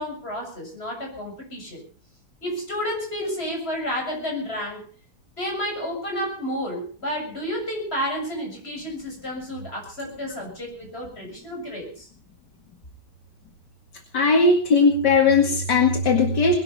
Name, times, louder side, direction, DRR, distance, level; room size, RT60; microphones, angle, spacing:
voice 1, 0.0-1.8 2.4-4.8 5.4-12.1, equal, 35° left, 0 dB, 7.6 m, -31 dB
voice 2, 14.1-16.5, left 3 dB, 75° left, 3 dB, 2.6 m, -18 dB
21.0 x 12.0 x 5.6 m, 0.40 s
omnidirectional pair, 1.9 m